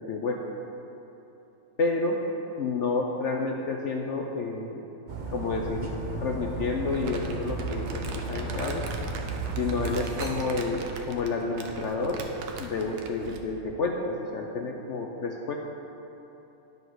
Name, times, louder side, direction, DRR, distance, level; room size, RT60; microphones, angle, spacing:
voice 1, 0.1-0.4 1.8-2.2 2.6-4.8 5.3-5.9 6.2-8.8 9.6-12.2 12.6-15.5, left 3 dB, 65° left, 1 dB, 0.7 m, -30 dB
Dog, 5.1-10.5, right 3 dB, 45° right, 0.6 m, -34 dB
Crumpling crinkling, 6.9-13.5, right 4 dB, 65° right, 1.2 m, -40 dB
9.9 x 5.3 x 6.1 m, 3.0 s
omnidirectional pair, 1.9 m